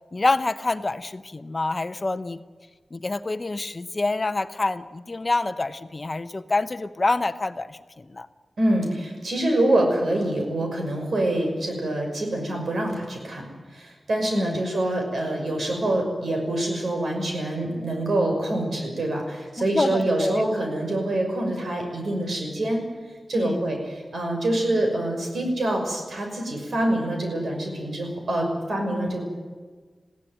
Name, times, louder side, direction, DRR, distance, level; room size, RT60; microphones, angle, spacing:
voice 1, 0.1-2.4 2.9-8.3 14.2-14.6 19.6-20.4 23.3-23.7 28.9-29.2, left 3 dB, 35° left, 11 dB, 0.8 m, -27 dB
voice 2, 8.6-22.8 23.3-29.3, right 1 dB, 75° right, 2 dB, 6.1 m, -25 dB
21.0 x 16.0 x 9.1 m, 1.5 s
wide cardioid pair, 95°, 0 cm